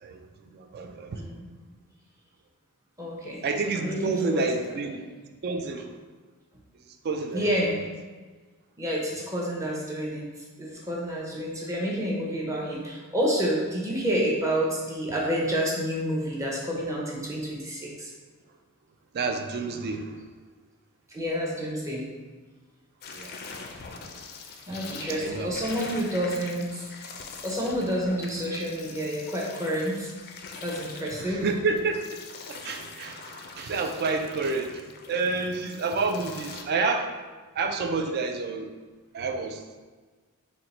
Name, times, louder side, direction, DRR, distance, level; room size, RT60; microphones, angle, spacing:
voice 1, 0.5-1.2 3.4-5.1 5.4-5.9 7.0-7.7 19.1-20.2 23.1-23.3 25.1-25.8 31.2-32.2 32.5-34.8 35.1-37.1 37.6-38.7 39.1-39.6, right 4 dB, 45° right, 6 dB, 0.3 m, -29 dB
voice 2, 1.1-1.5 3.0-3.4 3.7-4.4 7.3-7.8 8.8-10.2 10.6-18.1 21.1-22.1 24.7-27.1 27.4-30.1 30.6-31.4, equal, 15° right, -3 dB, 0.6 m, -29 dB
sound 1, 23.0-36.6, left 4 dB, 45° left, 0.4 m, -43 dB
4.3 x 2.1 x 4.0 m, 1.4 s
head